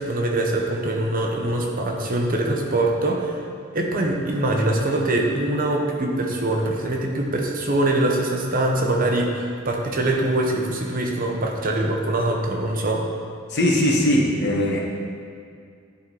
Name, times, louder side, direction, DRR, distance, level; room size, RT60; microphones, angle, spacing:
voice 1, 0.0-3.4 3.7-13.1, right 1 dB, 40° right, 1 dB, 0.9 m, -23 dB
voice 2, 13.5-14.8, left 1 dB, 55° left, -2 dB, 1.2 m, -20 dB
10.5 x 3.8 x 4.6 m, 2.3 s
head